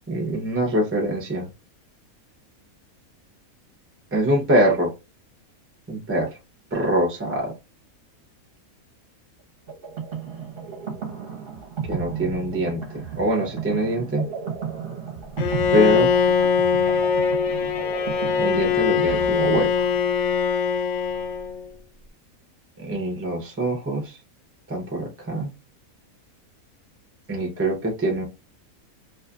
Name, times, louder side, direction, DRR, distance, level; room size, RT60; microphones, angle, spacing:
voice 1, 0.1-1.5 4.1-4.9 5.9-6.3 6.7-7.5 11.9-14.3 15.7-16.2 18.4-19.9 22.8-24.2 24.7-25.5 27.3-28.2, right 1 dB, 15° right, 0.4 m, -24 dB
sound 1, 9.7-20.2, right 6 dB, 45° right, 0.8 m, -34 dB
Bowed string instrument, 15.4-21.7, left 6 dB, 65° left, 0.8 m, -22 dB
2.6 x 2.4 x 2.3 m
omnidirectional pair, 1.5 m